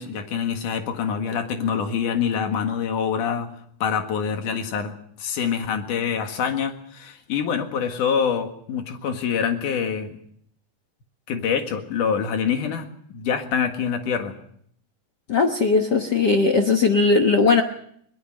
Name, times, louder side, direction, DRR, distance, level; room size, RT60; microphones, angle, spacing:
voice 1, 0.0-3.5 3.8-4.9 5.2-10.2 11.3-14.3, left 7 dB, 80° left, 6 dB, 3.3 m, -25 dB
voice 2, 15.3-17.6, left 4 dB, 55° left, 4 dB, 1.2 m, -18 dB
21.5 x 20.0 x 6.4 m, 0.66 s
omnidirectional pair, 3.6 m